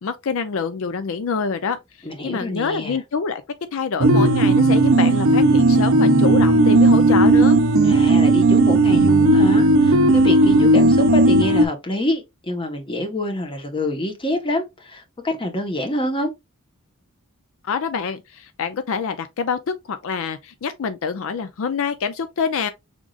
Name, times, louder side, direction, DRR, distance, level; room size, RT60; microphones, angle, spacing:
voice 1, 0.0-3.4 3.7-7.6 17.6-22.7, left 5 dB, 65° left, 0.4 m, -26 dB
voice 2, 2.0-3.0 7.8-16.3, left 1 dB, 25° left, 1.0 m, -26 dB
sound 1, 4.0-11.7, right 2 dB, 65° right, 0.7 m, -15 dB
5.0 x 3.6 x 2.3 m
head